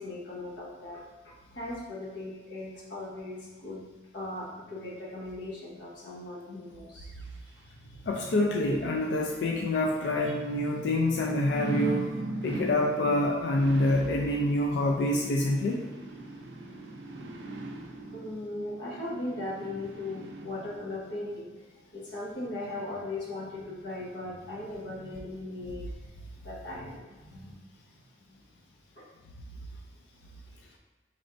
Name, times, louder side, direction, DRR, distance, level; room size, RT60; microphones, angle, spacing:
voice 1, 0.0-3.8 4.1-7.1 18.1-21.5 21.9-26.1 26.4-27.6 29.0-29.1, left 2 dB, 85° left, -5 dB, 1.0 m, -38 dB
sound 1, 7.1-21.0 21.4-21.5, right 1 dB, 80° right, 0.4 m, -40 dB
voice 2, 8.1-12.1 12.4-15.8, left 1 dB, 70° left, 1 dB, 0.3 m, -26 dB
4.2 x 3.1 x 2.5 m, 1.3 s
head